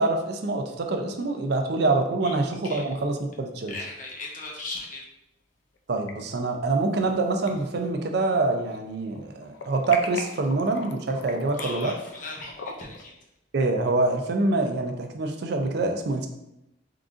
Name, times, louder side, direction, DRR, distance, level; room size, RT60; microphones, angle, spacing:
voice 1, 0.0-3.7 5.9-11.9 13.5-16.3, right 3 dB, 55° right, 4 dB, 0.4 m, -25 dB
sound 1, 2.0-2.7 3.0-3.1 4.6-4.7 5.8-6.1 6.6-7.2 7.5-8.8 9.1-13.0, left 4 dB, 75° left, 0.4 m, -40 dB
voice 2, 3.7-5.0 11.5-13.1, left 2 dB, 45° left, -1 dB, 0.8 m, -37 dB
3.7 x 3.7 x 2.5 m, 0.84 s
head